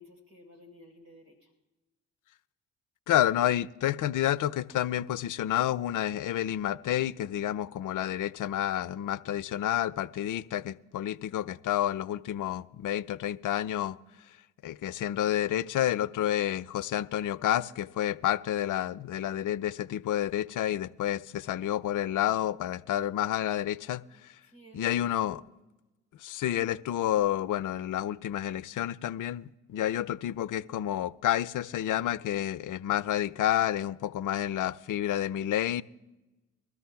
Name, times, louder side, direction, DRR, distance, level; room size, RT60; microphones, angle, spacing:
voice 1, 0.0-1.5 24.4-25.5, left 1 dB, 75° right, 2 dB, 4.2 m, -54 dB
voice 2, 3.1-14.0 14.6-24.0 24.7-25.4 26.2-35.8, left 12 dB, 60° left, 17 dB, 0.6 m, -29 dB
23.5 x 13.5 x 2.3 m, 1.1 s
hypercardioid pair, 45°, 36 cm